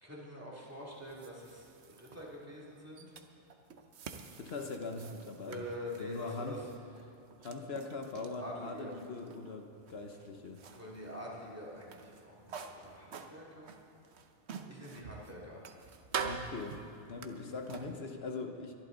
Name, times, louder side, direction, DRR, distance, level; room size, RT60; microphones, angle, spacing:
voice 1, 0.0-3.1 5.5-6.6 8.4-8.9 10.7-13.7 14.6-15.6, equal, 15° right, -5 dB, 2.7 m, -45 dB
sound 1, 0.7-17.9, right 6 dB, 85° right, 1.1 m, -47 dB
voice 2, 4.4-5.7 6.0-6.6 7.4-10.7 16.2-18.7, left 3 dB, 70° left, 4 dB, 1.2 m, -41 dB
22.5 x 11.5 x 4.0 m, 2.7 s
omnidirectional pair, 1.1 m